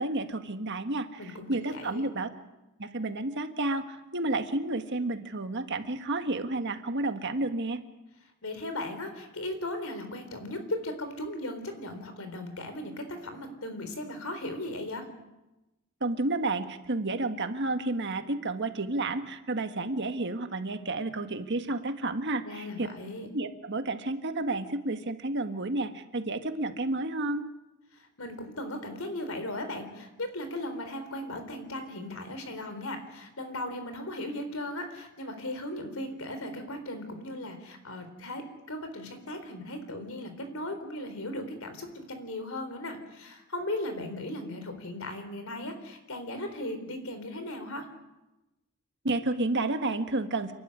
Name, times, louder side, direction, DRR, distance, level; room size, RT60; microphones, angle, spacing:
voice 1, 0.0-2.3 2.8-7.8 16.0-22.9 23.3-27.5 49.0-50.5, right 2 dB, 55° right, 8 dB, 1.6 m, -31 dB
voice 2, 1.2-2.1 8.4-15.1 22.5-23.3 28.2-47.9, left 1 dB, 80° left, 8 dB, 3.9 m, -37 dB
29.0 x 12.0 x 9.9 m, 1.0 s
head